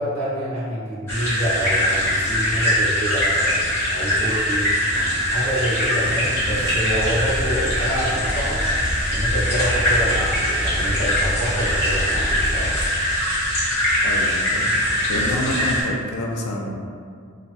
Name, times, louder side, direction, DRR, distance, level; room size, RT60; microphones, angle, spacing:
voice 1, 0.0-4.7 5.2-8.6 9.1-12.8, equal, 65° right, -8 dB, 0.9 m, -27 dB
sound 1, 1.1-15.8, equal, 10° left, 1.0 m, -22 dB
sound 2, 6.3-12.9, equal, 35° right, 0.3 m, -29 dB
voice 2, 14.0-14.7 15.1-16.7, left 1 dB, 70° left, 0 dB, 0.4 m, -27 dB
2.6 x 2.3 x 2.4 m, 2.2 s
head